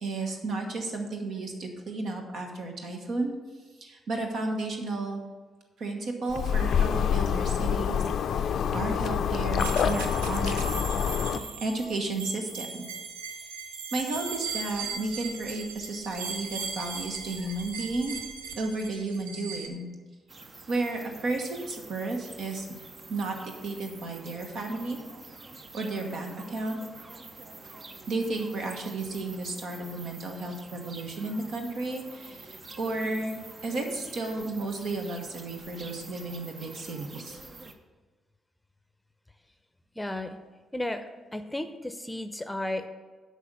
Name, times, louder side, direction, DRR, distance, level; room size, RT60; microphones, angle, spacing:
voice 1, 0.0-3.3 3.8-5.2 5.8-8.0 8.3-10.6 11.3-12.7 13.9-18.2 18.5-19.9 20.7-22.6 23.1-25.0 25.7-26.8 28.1-37.4, right 2 dB, 65° right, 3 dB, 1.3 m, -33 dB
sound 1, 6.3-11.4, left 8 dB, 65° left, 0.4 m, -26 dB
sound 2, 9.6-19.7, right 5 dB, 85° right, 0.7 m, -38 dB
sound 3, 20.3-37.7, right 3 dB, 45° right, 0.9 m, -47 dB
voice 2, 40.0-40.4 40.7-41.0 41.3-42.9, left 1 dB, 10° left, 9 dB, 0.7 m, -33 dB
8.4 x 5.1 x 6.7 m, 1.4 s
hypercardioid pair, 40°, 0 cm